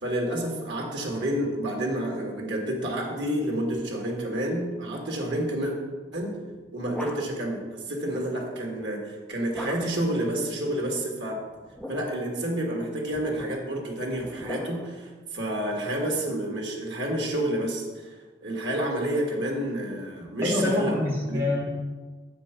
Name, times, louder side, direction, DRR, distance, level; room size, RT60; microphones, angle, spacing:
voice 1, 0.0-5.7 6.1-6.3 6.7-11.4 11.9-17.9 18.4-21.0 21.3-21.4, right 1 dB, 90° right, 0 dB, 1.9 m, -29 dB
sound 1, 6.4-7.6 9.5-10.2 11.5-12.3 13.1-15.1, left 1 dB, 5° left, 0.7 m, -40 dB
voice 2, 20.4-21.6, left 2 dB, 15° right, -4 dB, 1.9 m, -25 dB
7.8 x 5.2 x 5.8 m, 1.3 s
head